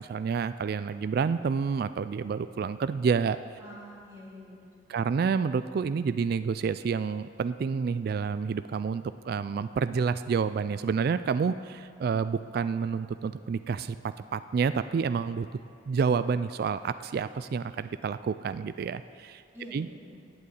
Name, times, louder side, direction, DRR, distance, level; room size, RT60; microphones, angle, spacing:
voice 1, 0.0-3.4 4.9-15.5 15.9-19.4 19.7-19.9, right 5 dB, 55° right, 12 dB, 0.3 m, -29 dB
voice 2, 3.6-5.0 19.5-20.2, equal, 15° right, -9 dB, 3.5 m, -47 dB
9.3 x 7.9 x 8.3 m, 2.4 s
head